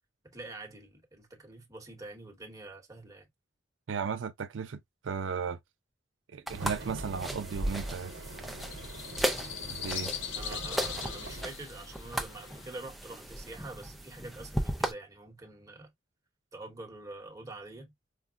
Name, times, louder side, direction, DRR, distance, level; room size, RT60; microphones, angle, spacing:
voice 1, 0.2-3.3 10.3-15.9 16.5-17.9, right 2 dB, 20° right, 1.1 m, -46 dB
voice 2, 3.9-5.6 6.3-8.1 9.6-10.1, right 6 dB, 90° right, 0.5 m, -35 dB
sound 1, 6.5-14.9, equal, ahead, 0.5 m, -36 dB
sound 2, 6.5-11.5, right 2 dB, 65° right, 0.8 m, -43 dB
sound 3, 7.7-12.8, left 9 dB, 75° left, 0.6 m, -42 dB
4.7 x 2.1 x 2.3 m
head